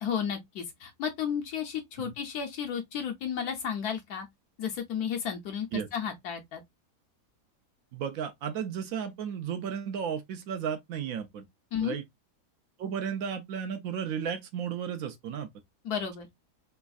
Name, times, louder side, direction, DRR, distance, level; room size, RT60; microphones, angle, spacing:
voice 1, 0.0-4.3 4.6-6.6 11.7-12.0 15.8-16.3, left 7 dB, 75° left, 1.1 m, -33 dB
voice 2, 7.9-11.4 11.8-12.0 12.8-15.5, right 7 dB, 70° right, 0.9 m, -34 dB
3.3 x 3.0 x 2.3 m
omnidirectional pair, 1.7 m